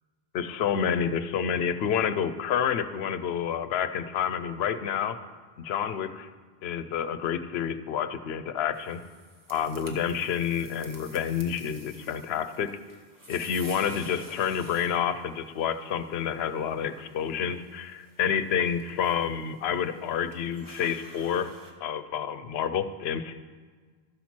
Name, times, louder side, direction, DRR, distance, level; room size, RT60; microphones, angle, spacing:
voice 1, 0.3-5.2 5.6-6.3 6.6-9.0 9.5-12.7 13.3-21.5 21.8-23.3, left 8 dB, 80° left, 11 dB, 0.8 m, -29 dB
sound 1, 8.7-21.7, right 1 dB, 20° right, 0.9 m, -51 dB
13.0 x 4.3 x 5.9 m, 1.5 s
omnidirectional pair, 1.0 m